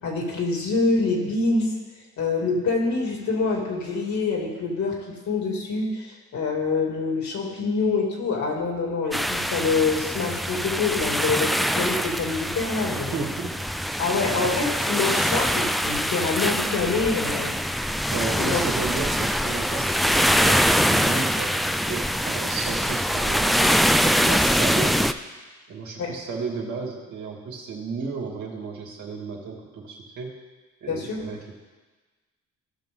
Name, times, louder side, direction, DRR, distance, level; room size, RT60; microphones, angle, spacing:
voice 1, 0.0-1.7 2.2-13.3 14.0-17.5 18.4-18.6 26.0-26.1 30.9-31.2, left 4 dB, 65° left, -1 dB, 3.0 m, -26 dB
sound 1, 9.1-25.1, equal, ahead, 0.3 m, -24 dB
voice 2, 13.1-13.6 18.1-25.0 25.7-30.3 30.8-31.5, right 4 dB, 70° right, -2 dB, 2.5 m, -33 dB
16.5 x 6.3 x 3.9 m, 1.3 s
cardioid pair, 90°, 30 cm